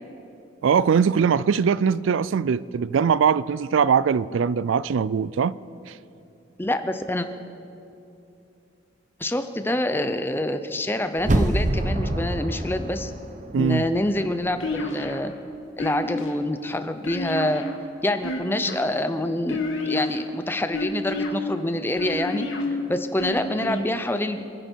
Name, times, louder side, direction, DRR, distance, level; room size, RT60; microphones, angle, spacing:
voice 1, 0.6-5.6 5.9-6.0 13.5-13.8, right 6 dB, 80° right, 0.4 m, -21 dB
voice 2, 6.6-7.3 9.2-13.1 13.6-15.3 15.8-17.7 18.0-24.4, left 1 dB, 10° left, 0.7 m, -26 dB
sound 1, 11.2-14.1 14.5-14.6, right 1 dB, 40° right, 0.8 m, -26 dB
sound 2, 14.6-15.2 15.8-16.3 17.0-17.8 18.2-18.9 19.5-20.2 20.7-21.3 22.0-22.6 23.2-23.8, left 2 dB, 90° left, 1.9 m, -29 dB
28.0 x 10.5 x 4.5 m
head